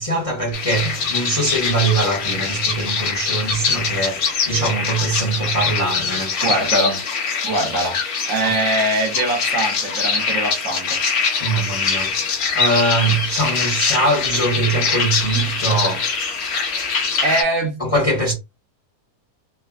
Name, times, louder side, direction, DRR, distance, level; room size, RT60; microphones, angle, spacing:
voice 1, 0.0-6.4 11.3-16.2 17.8-18.3, right 2 dB, 25° left, 0.9 m, -22 dB
sound 1, 0.5-17.4, left 5 dB, 75° left, 1.2 m, -23 dB
voice 2, 6.4-7.0 7.4-8.0 8.3-11.0 17.2-17.8, right 2 dB, 65° right, 1.1 m, -22 dB
3.4 x 2.1 x 2.3 m
omnidirectional pair, 1.6 m